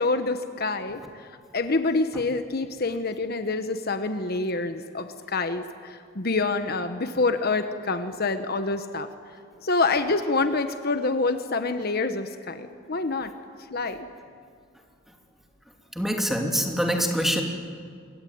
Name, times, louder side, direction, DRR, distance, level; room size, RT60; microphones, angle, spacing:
voice 1, 0.0-9.1 9.6-13.3 13.7-14.1, left 3 dB, 50° left, 8 dB, 1.2 m, -27 dB
voice 2, 15.9-17.4, equal, ahead, 2 dB, 2.8 m, -24 dB
26.5 x 23.0 x 9.5 m, 2.2 s
head